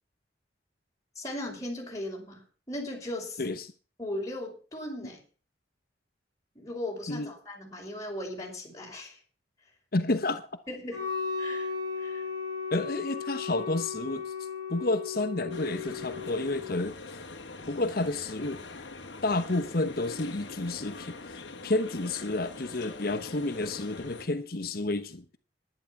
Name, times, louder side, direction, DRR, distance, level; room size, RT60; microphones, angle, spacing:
voice 1, 1.2-2.4 2.7-3.4 4.0-5.2 6.6-9.2 10.7-11.1 11.4-11.7 12.0-12.2, left 1 dB, 20° left, 5.4 m, -37 dB
voice 2, 3.4-3.7 7.1-7.3 9.9-10.5 12.7-14.3 14.7-16.9 17.7-18.6 19.2-21.2 21.6-25.4, left 2 dB, 55° left, 1.0 m, -30 dB
Wind instrument woodwind instrument, 10.9-16.7, left 5 dB, 25° right, 4.5 m, -35 dB
sound 1, 15.5-24.3, left 3 dB, 85° left, 2.0 m, -43 dB
11.0 x 11.0 x 6.0 m
head